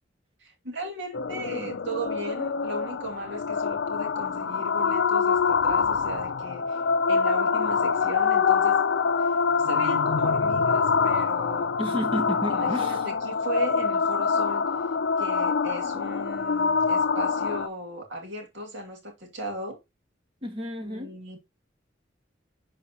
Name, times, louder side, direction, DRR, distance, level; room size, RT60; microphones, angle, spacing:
voice 1, 0.4-6.8 7.1-8.8 9.2-9.3 9.6-11.7 12.5-14.7 15.2-19.8 20.8-21.4, right 1 dB, 75° right, 2.5 m, -37 dB
sound 1, 1.1-17.7, left 5 dB, 75° left, 0.5 m, -25 dB
voice 2, 11.8-13.1 20.4-21.1, equal, 30° right, 1.4 m, -31 dB
11.0 x 4.1 x 2.9 m
head